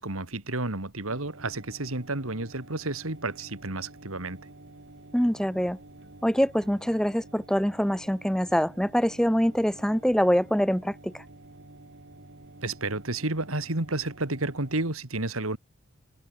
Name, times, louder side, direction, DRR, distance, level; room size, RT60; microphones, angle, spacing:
voice 1, 0.0-4.4 12.6-15.6, right 2 dB, 80° right, 3.1 m, -31 dB
sound 1, 1.1-14.9, right 2 dB, 55° right, 2.3 m, -50 dB
voice 2, 5.1-5.8 6.2-11.2, equal, 5° left, 1.1 m, -24 dB
head